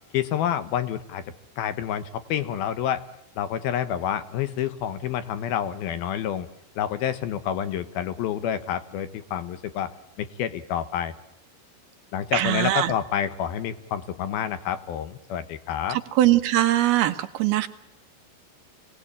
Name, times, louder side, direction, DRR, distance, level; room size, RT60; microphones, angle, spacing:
voice 1, 0.1-1.2 1.6-3.0 3.4-6.5 6.8-11.1 12.1-16.0, left 9 dB, 70° left, 12 dB, 2.6 m, -28 dB
voice 2, 12.3-12.9 15.9-17.7, right 14 dB, 70° right, 10 dB, 2.7 m, -21 dB
27.0 x 19.0 x 8.8 m, 0.82 s
omnidirectional pair, 5.2 m